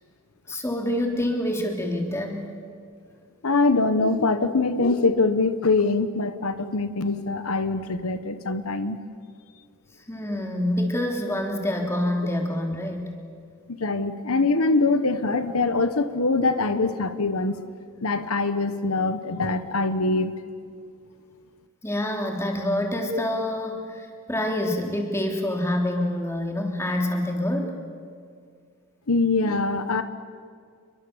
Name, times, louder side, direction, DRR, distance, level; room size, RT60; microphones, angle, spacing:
voice 1, 0.5-2.6 10.1-13.1 21.8-27.7, left 1 dB, 10° left, 2 dB, 3.2 m, -26 dB
voice 2, 3.4-9.0 13.8-17.6 18.0-20.3 29.1-30.0, left 3 dB, 75° left, 11 dB, 1.1 m, -23 dB
29.0 x 23.0 x 7.2 m, 2.2 s
head